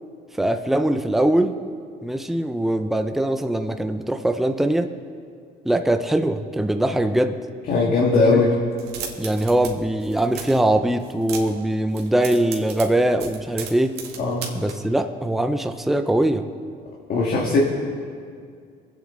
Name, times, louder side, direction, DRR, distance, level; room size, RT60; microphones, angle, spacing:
voice 1, 0.4-1.6 2.0-4.9 5.6-7.4 8.2-8.4 9.2-14.0 14.5-16.5, right 1 dB, ahead, 7 dB, 0.6 m, -22 dB
voice 2, 7.7-8.5 14.2-14.5 17.1-17.6, left 3 dB, 55° left, -3 dB, 2.0 m, -19 dB
sound 1, 8.7-9.7 10.0-10.6 11.0-11.6 11.9-14.7, right 7 dB, 75° right, 1.9 m, -35 dB
24.0 x 8.8 x 3.8 m, 2.2 s
cardioid pair, 110°, 17 cm